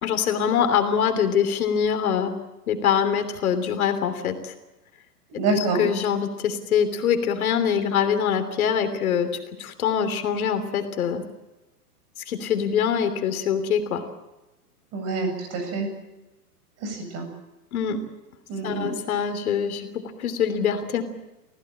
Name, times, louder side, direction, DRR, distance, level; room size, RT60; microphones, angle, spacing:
voice 1, 0.0-2.3 2.7-4.5 5.8-9.3 9.6-11.2 12.3-14.0 17.7-18.0 18.6-21.0, left 8 dB, 65° left, 9 dB, 3.2 m, -24 dB
voice 2, 5.4-5.8 14.9-15.9 16.8-17.3 18.5-18.9, right 3 dB, 35° right, 6 dB, 7.9 m, -26 dB
26.0 x 16.5 x 8.8 m, 1.0 s
hypercardioid pair, 125°, 47 cm